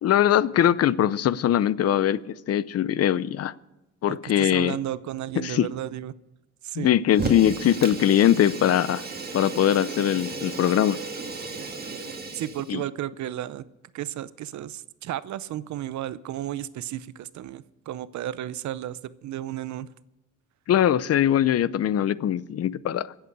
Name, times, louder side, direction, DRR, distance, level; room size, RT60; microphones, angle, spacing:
voice 1, 0.0-3.5 4.0-4.8 5.4-5.7 6.8-9.0 9.3-11.0 12.7-12.8 20.7-23.1, left 11 dB, 55° left, 0.6 m, -21 dB
voice 2, 4.1-6.1 6.6-7.0 12.3-13.6 13.9-19.9, right 12 dB, 70° right, 0.7 m, -33 dB
Fire, 7.1-12.7, right 3 dB, 30° right, 2.3 m, -34 dB
24.0 x 8.2 x 4.8 m
cardioid pair, 90°, 30 cm